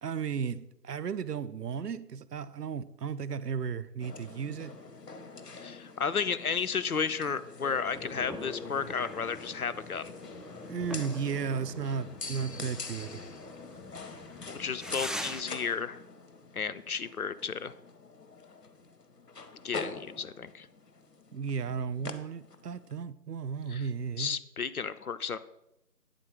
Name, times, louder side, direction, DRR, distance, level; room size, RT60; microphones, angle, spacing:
voice 1, 0.0-4.8 10.7-13.2 21.3-24.4, right 6 dB, 80° right, 0.6 m, -34 dB
sound 1, 4.0-22.9, left 4 dB, 85° left, 0.9 m, -45 dB
voice 2, 5.6-10.1 14.5-16.0 16.5-17.7 19.6-20.7 23.7-23.9 24.2-25.4, left 6 dB, 65° left, 0.5 m, -33 dB
sound 2, 7.9-15.4, equal, ahead, 0.3 m, -44 dB
9.0 x 3.9 x 4.9 m
figure-of-eight pair, 170°, 47 cm